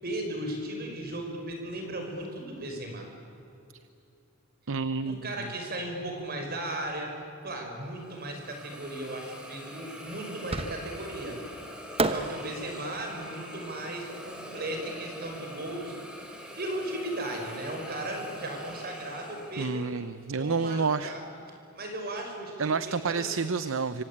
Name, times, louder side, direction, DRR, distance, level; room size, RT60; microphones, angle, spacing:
voice 1, 0.0-3.1 5.0-7.1 7.4-11.4 12.0-16.0 16.6-19.8 20.4-21.2 21.7-23.2, right 1 dB, 45° right, 3 dB, 5.6 m, -36 dB
voice 2, 4.7-5.3 19.6-21.1 22.6-24.0, right 4 dB, 60° right, 14 dB, 0.7 m, -29 dB
Hiss, 7.9-20.1, equal, 5° right, 3.9 m, -44 dB
Fireworks, 10.5-11.2 12.0-15.1, right 2 dB, 25° right, 1.1 m, -34 dB
26.0 x 24.5 x 8.7 m, 2.9 s
head